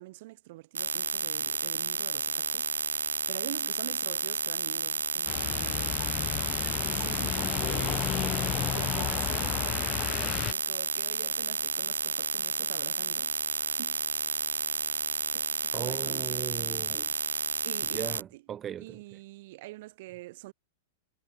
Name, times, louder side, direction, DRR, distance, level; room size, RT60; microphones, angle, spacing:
voice 1, 0.0-6.0 6.9-8.1 8.7-13.3 13.6-14.0 15.3-16.4 17.6-18.4 18.8-20.5, right 19 dB, 55° right, 1.5 m, -46 dB
sound 1, 0.7-18.2, right 6 dB, 75° right, 0.3 m, -31 dB
sound 2, 5.3-10.5, left 11 dB, 30° left, 0.6 m, -33 dB
voice 2, 15.7-17.1 17.9-19.0, right 9 dB, 25° right, 0.7 m, -38 dB
figure-of-eight pair, 100°, 0 cm